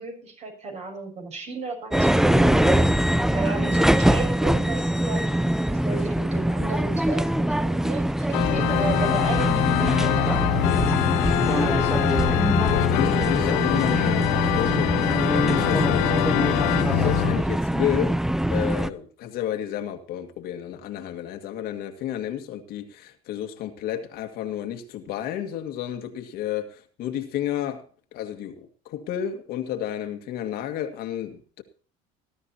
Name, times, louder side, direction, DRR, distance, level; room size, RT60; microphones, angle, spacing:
voice 1, 0.0-5.4 5.7-12.6, right 4 dB, 40° right, 4 dB, 6.5 m, -35 dB
sound 1, 1.9-18.9, right 1 dB, 5° right, 0.5 m, -23 dB
Organ, 8.3-17.4, left 17 dB, 90° left, 0.7 m, -24 dB
voice 2, 12.7-18.2 18.5-27.8 28.1-31.6, left 11 dB, 65° left, 6 dB, 1.9 m, -31 dB
20.0 x 12.5 x 2.8 m, 0.41 s
supercardioid pair, 110°, 17 cm